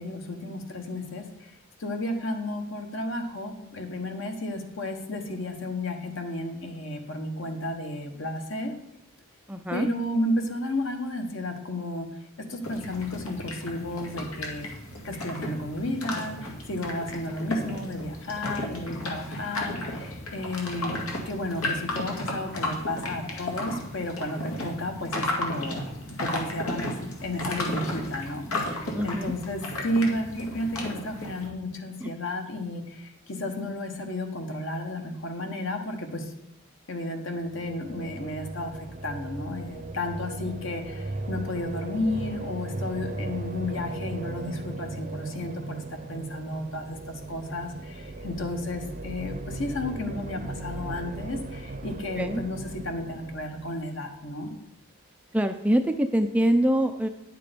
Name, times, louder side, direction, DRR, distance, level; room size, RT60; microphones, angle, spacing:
voice 1, 0.0-1.5 1.8-8.7 9.7-12.1 12.5-14.7 15.0-25.8 26.2-36.3 36.9-52.6 52.8-54.5, left 1 dB, 60° left, 4 dB, 1.3 m, -32 dB
voice 2, 9.5-9.9 28.9-29.3 32.0-32.1 52.2-52.4 55.3-57.1, right 1 dB, 5° right, 7 dB, 0.4 m, -24 dB
sound 1, 12.6-31.5, left 1 dB, 85° left, 2.0 m, -34 dB
sound 2, 37.4-54.3, right 2 dB, 40° right, 0.7 m, -37 dB
9.9 x 6.7 x 5.2 m, 0.81 s
head